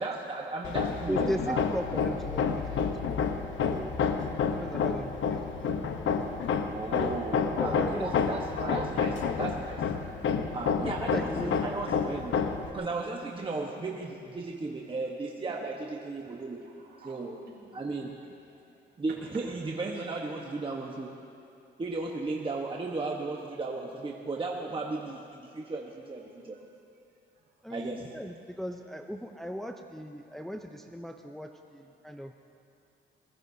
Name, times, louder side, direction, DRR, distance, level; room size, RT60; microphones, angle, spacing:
voice 1, 0.0-1.7 6.7-9.8 10.5-12.4 12.7-16.6 17.0-17.4 17.7-18.1 19.0-21.1 21.8-26.6 27.7-28.1, right 3 dB, 25° right, -1 dB, 1.3 m, -35 dB
Hammer, 0.6-12.7, left 6 dB, 75° left, 1.0 m, -29 dB
voice 2, 1.1-2.5 2.7-2.9 3.7-3.9 4.6-5.4 7.4-8.9 11.0-11.6 27.6-32.3, equal, ahead, 4 dB, 0.7 m, -37 dB
voice 3, 6.0-6.9 16.1-18.0 23.0-23.3 24.9-25.0 25.6-25.7 26.2-26.6 29.3-29.8 30.3-30.6, right 3 dB, 60° right, -3 dB, 4.4 m, -55 dB
22.5 x 21.0 x 2.8 m, 2.5 s
cardioid pair, 90°, 20 cm